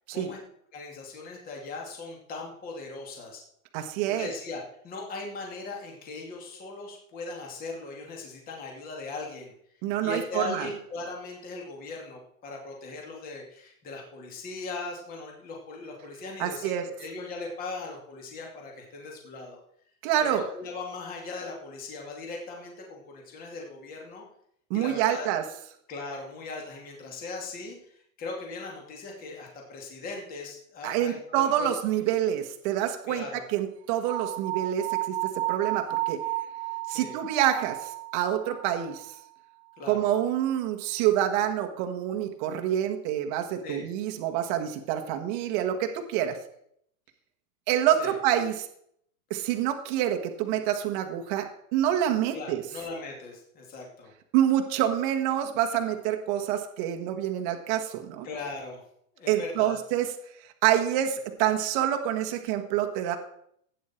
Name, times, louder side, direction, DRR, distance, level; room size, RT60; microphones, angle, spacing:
voice 1, 0.7-3.4 4.0-9.5 10.0-19.6 20.2-24.2 24.7-25.3 25.9-31.7 33.1-33.4 36.8-37.2 39.8-40.1 43.6-43.9 48.0-48.2 52.3-54.1 58.2-58.8 59.1-59.8, left 3 dB, 20° left, 0 dB, 2.6 m, -39 dB
voice 2, 3.7-4.3 9.8-10.7 16.4-16.8 20.0-20.4 24.7-25.4 30.8-33.2 33.5-35.1 35.5-36.2 36.9-39.1 39.9-46.4 47.7-48.7 49.3-52.6 54.3-58.3 59.3-60.1 60.6-63.2, right 11 dB, 35° right, 5 dB, 1.4 m, -27 dB
sound 1, 34.1-39.2, right 17 dB, 50° right, 0.7 m, -33 dB
16.5 x 9.4 x 4.5 m, 0.70 s
supercardioid pair, 175°, 43 cm